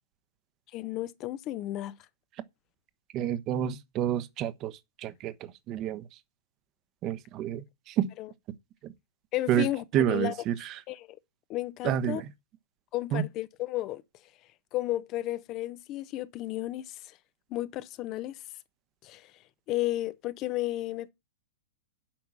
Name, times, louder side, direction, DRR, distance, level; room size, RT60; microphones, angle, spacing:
voice 1, 0.7-1.9 8.2-8.3 9.3-10.4 10.9-11.2 11.5-12.2 12.9-14.0 14.7-17.0 17.5-18.4 19.0-19.3 19.7-21.1, left 15 dB, 35° left, 0.8 m, -33 dB
voice 2, 3.1-4.7 5.0-5.3 5.7-6.0 7.0-8.1 9.5-9.7 9.9-10.7 11.8-12.2 13.1-13.2, right 11 dB, 35° right, 1.0 m, -28 dB
8.8 x 6.0 x 7.5 m
figure-of-eight pair, 105°, 0 cm